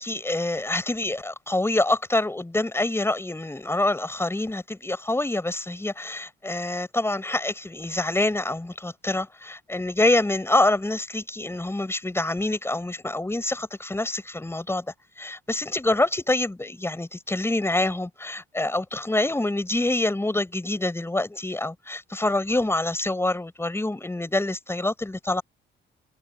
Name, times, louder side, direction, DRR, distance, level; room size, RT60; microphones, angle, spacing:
voice 1, 0.0-14.9 15.2-25.4, left 2 dB, 10° left, 7.1 m, -26 dB
cardioid pair, 90°, 20 cm